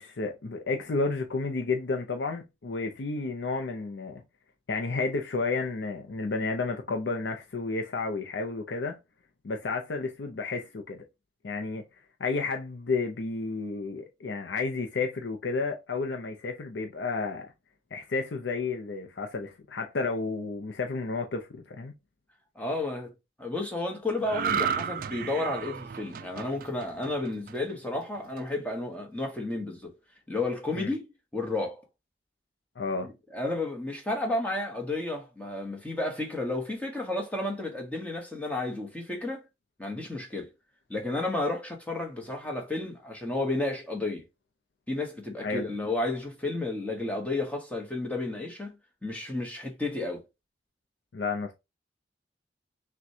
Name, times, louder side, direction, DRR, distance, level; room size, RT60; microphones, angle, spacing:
voice 1, 0.0-4.2 4.7-9.0 9.4-11.0 11.4-11.8 12.2-17.5 17.9-21.9 30.7-30.9 32.8-33.1 45.4-45.7 51.1-51.5, left 3 dB, 90° left, 0.6 m, -31 dB
voice 2, 22.6-23.1 23.4-29.9 30.3-31.1 31.3-31.8 33.0-39.4 39.8-40.5 40.9-44.2 44.9-48.7 49.0-50.2, left 2 dB, 10° left, 1.0 m, -32 dB
sound 1, 24.2-27.7 28.1-28.4, right 7 dB, 50° right, 0.3 m, -33 dB
5.9 x 2.2 x 2.7 m
head